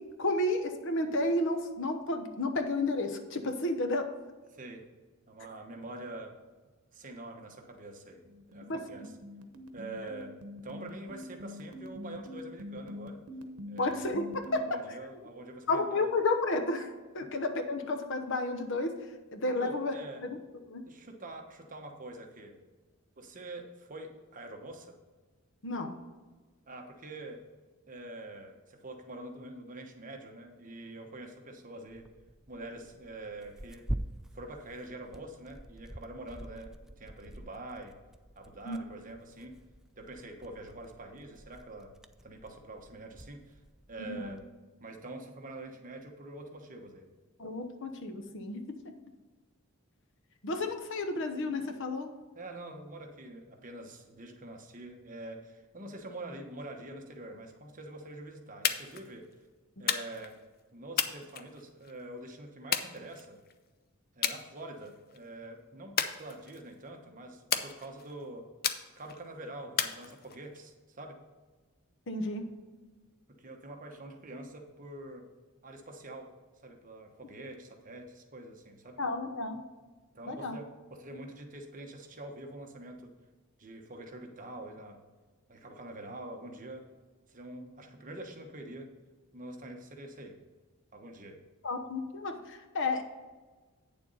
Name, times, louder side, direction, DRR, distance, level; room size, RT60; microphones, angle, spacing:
voice 1, 0.0-4.1 8.7-8.8 13.8-15.0 15.7-19.0 19.3-19.9 20.2-20.3 20.7-20.9 25.6-26.0 38.7-38.8 44.1-44.3 47.4-48.9 50.4-52.1 72.1-72.5 79.0-79.6 80.3-80.6 91.6-93.0, left 2 dB, 60° left, 7 dB, 1.0 m, -32 dB
voice 2, 4.5-4.9 5.3-6.4 6.9-9.1 9.7-10.3 10.6-13.2 13.7-14.0 14.5-16.1 17.2-17.3 19.5-20.2 20.9-22.6 23.2-24.9 26.7-27.4 27.9-32.1 32.5-34.0 34.3-36.7 37.0-38.0 38.4-39.6 40.0-41.9 42.2-43.6 43.9-44.4 44.8-47.1 52.3-59.3 59.8-60.4 60.7-63.4 64.1-68.5 69.0-71.2 73.3-75.3 75.6-76.3 76.6-79.0 80.1-83.1 83.6-85.0 85.5-86.9 87.3-89.0 89.3-90.4 90.9-91.4, right 2 dB, 40° right, 3 dB, 1.1 m, -45 dB
sound 1, 8.3-14.6, left 1 dB, 85° right, 0.9 m, -44 dB
Tearing, 31.9-44.5, right 1 dB, ahead, 0.3 m, -45 dB
sound 2, 58.6-59.1 59.9-60.3 61.0-61.9 62.7-63.5 64.2-64.4 64.8-65.2 66.0-66.7 67.5-68.1 68.6-69.2 69.8-70.6, left 8 dB, 45° left, 0.6 m, -33 dB
8.9 x 7.0 x 4.1 m, 1.3 s
head